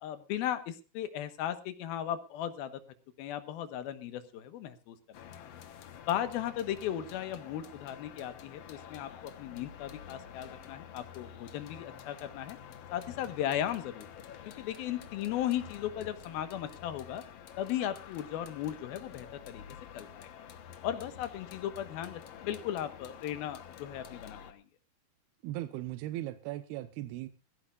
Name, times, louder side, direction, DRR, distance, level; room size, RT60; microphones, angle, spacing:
voice 1, 0.0-2.8 3.2-5.3 6.0-12.6 12.9-14.1 14.6-17.2 17.6-19.6 19.9-20.3 20.8-24.6, left 11 dB, 75° left, 11 dB, 2.9 m, -36 dB
sound 1, 5.1-24.5, left 9 dB, 90° left, 1.4 m, -49 dB
voice 2, 25.4-27.3, right 15 dB, 80° right, 12 dB, 2.7 m, -38 dB
21.5 x 15.5 x 2.4 m, 0.29 s
omnidirectional pair, 4.7 m